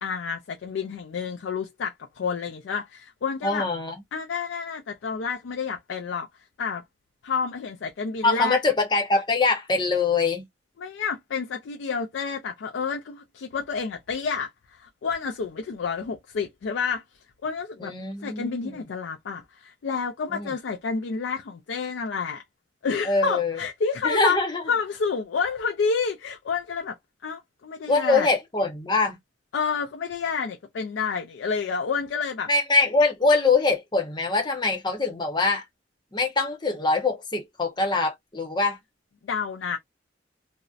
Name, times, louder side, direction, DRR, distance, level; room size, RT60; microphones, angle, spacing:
voice 1, 0.0-3.7 4.1-6.3 6.6-6.8 7.2-8.6 10.8-17.0 17.4-17.9 18.2-22.4 22.8-24.4 24.7-27.0 27.2-28.3 29.5-32.5 39.2-39.8, left 5 dB, 85° left, 0.4 m, -29 dB
voice 2, 3.4-4.0 8.2-10.4 17.8-18.8 20.3-20.5 23.0-23.6 24.0-24.6 27.9-29.2 32.5-35.6 36.1-38.8, left 3 dB, 25° left, 0.7 m, -23 dB
2.5 x 2.0 x 2.4 m
head